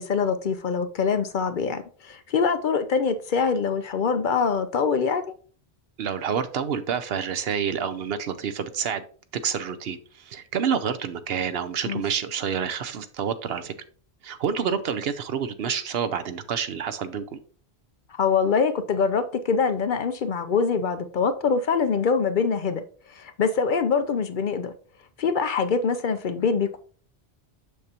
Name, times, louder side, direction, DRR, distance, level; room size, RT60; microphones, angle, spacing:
voice 1, 0.0-5.2 11.8-12.0 18.1-22.8 23.1-24.7 25.2-26.8, left 5 dB, 55° left, 10 dB, 0.7 m, -24 dB
voice 2, 6.0-9.0 9.3-13.7 14.2-17.4, right 7 dB, 70° right, 12 dB, 0.9 m, -28 dB
6.7 x 6.4 x 2.8 m, 0.42 s
omnidirectional pair, 1.1 m